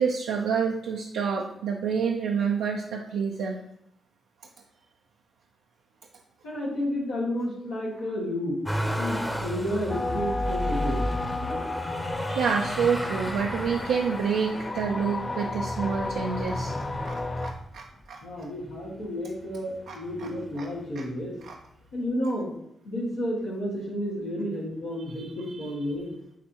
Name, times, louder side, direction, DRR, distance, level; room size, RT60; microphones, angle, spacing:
voice 1, 0.0-3.6 12.3-16.8 17.0-18.5 19.9-20.3 20.6-20.7 20.9-21.0 21.4-21.6 25.1-25.7, right 6 dB, 80° right, -1 dB, 0.5 m, -28 dB
voice 2, 6.4-8.6 9.0-11.2 11.8-11.9 18.2-21.3 21.9-22.5 22.8-26.1, equal, 85° left, -7 dB, 2.2 m, -31 dB
Motor vehicle (road), 8.6-17.8 18.4-19.2 19.5-20.6 21.6-21.7, equal, 10° left, 0.8 m, -34 dB
sound 1, 9.9-17.5, left 2 dB, 40° left, 0.5 m, -32 dB
9.7 x 3.3 x 2.9 m, 0.75 s
hypercardioid pair, 40°, 0 cm